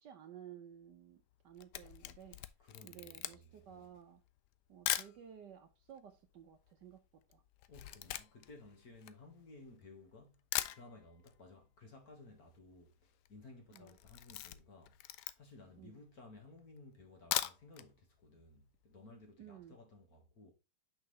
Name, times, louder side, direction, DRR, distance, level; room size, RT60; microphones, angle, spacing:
voice 1, 0.0-2.4 2.8-4.2 4.7-7.0 7.3-7.4 13.7-13.9 15.8-16.0 19.4-19.8, right 9 dB, 65° right, 1.2 m, -55 dB
Camera, 1.3-5.2 5.9-6.0 6.2-9.8 10.2-10.3 10.5-11.4 11.6-11.7 12.0-12.1 12.3-12.7 13.1-13.3 13.7-15.7 16.2-16.3 17.1-17.9 18.2-18.3 18.7-18.8, left 13 dB, 85° left, 0.9 m, -40 dB
voice 2, 2.6-3.9 7.7-10.4 10.7-15.0 15.4-20.5, left 2 dB, 50° left, 1.9 m, -57 dB
5.8 x 5.6 x 3.2 m
omnidirectional pair, 2.3 m